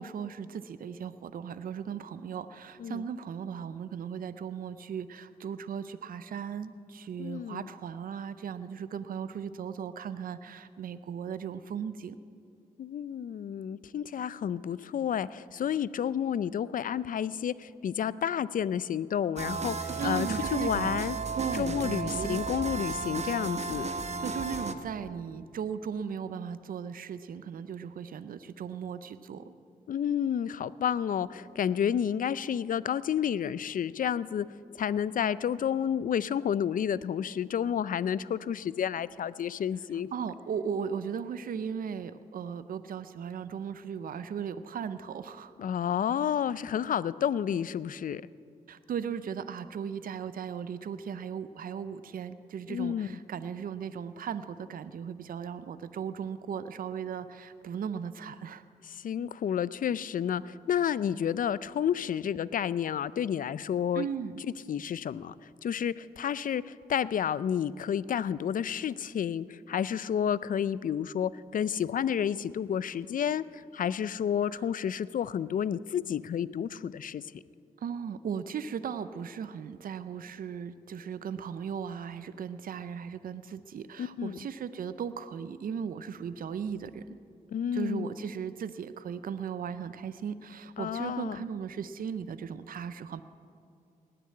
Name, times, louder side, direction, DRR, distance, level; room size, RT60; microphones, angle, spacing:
voice 1, 0.0-12.2 20.0-21.0 21.4-22.4 24.2-29.5 40.1-45.5 48.7-58.6 64.0-64.3 77.8-87.2 87.7-93.2, right 7 dB, 70° right, 13 dB, 0.6 m, -37 dB
voice 2, 7.2-7.7 12.8-21.2 21.5-23.9 29.9-34.5 34.8-40.1 45.6-48.2 52.7-53.2 58.8-64.1 64.4-77.2 84.0-84.4 87.5-88.1 90.8-91.4, left 8 dB, 65° left, 18 dB, 0.4 m, -30 dB
sound 1, 19.4-24.7, right 4 dB, 45° right, 1.0 m, -34 dB
19.0 x 6.8 x 8.7 m, 2.3 s
cardioid pair, 60°, 15 cm